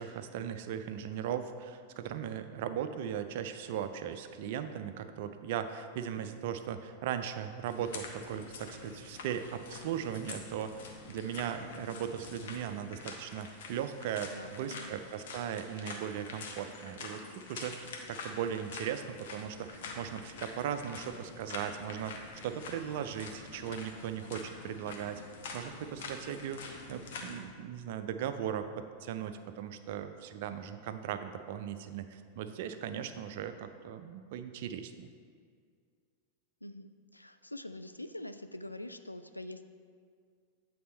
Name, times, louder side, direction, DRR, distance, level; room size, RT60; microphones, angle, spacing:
voice 1, 0.0-25.2 25.5-35.1, right 9 dB, 50° right, 9 dB, 0.4 m, -38 dB
sound 1, 7.7-27.4, left 4 dB, 55° left, 0.9 m, -46 dB
voice 2, 14.3-15.0 36.6-39.6, left 1 dB, 85° left, 9 dB, 0.3 m, -44 dB
8.4 x 4.3 x 4.2 m, 2.1 s
figure-of-eight pair, 90°, 0 cm